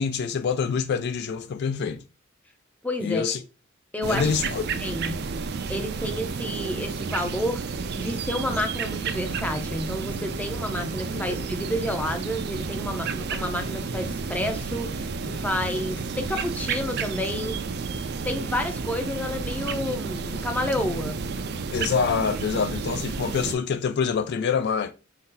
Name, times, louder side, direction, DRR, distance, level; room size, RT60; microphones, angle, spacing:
voice 1, 0.0-2.0 3.0-3.4 4.1-4.7 11.1-11.4 21.7-24.9, left 6 dB, 55° left, 0.3 m, -26 dB
voice 2, 2.8-3.2 3.9-4.3 4.8-5.2 5.7-7.6 8.0-17.6 18.2-21.2, left 1 dB, 10° left, 0.6 m, -30 dB
sound 1, 4.0-23.6, right 4 dB, 55° right, 0.4 m, -31 dB
4.6 x 2.8 x 3.8 m
head